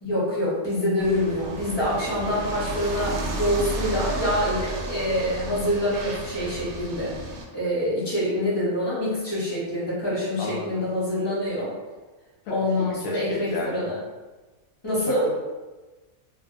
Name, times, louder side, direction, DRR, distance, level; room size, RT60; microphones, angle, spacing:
voice 1, 0.0-7.1 7.5-11.7 12.5-14.0 14.8-15.3, left 1 dB, 20° left, -9 dB, 0.9 m, -26 dB
sound 1, 1.0-7.4, right 2 dB, 80° right, 1.0 m, -33 dB
voice 2, 10.4-10.8 12.4-13.8 15.1-15.3, left 3 dB, 75° left, -2 dB, 1.1 m, -34 dB
2.6 x 2.5 x 2.5 m, 1.2 s
omnidirectional pair, 1.5 m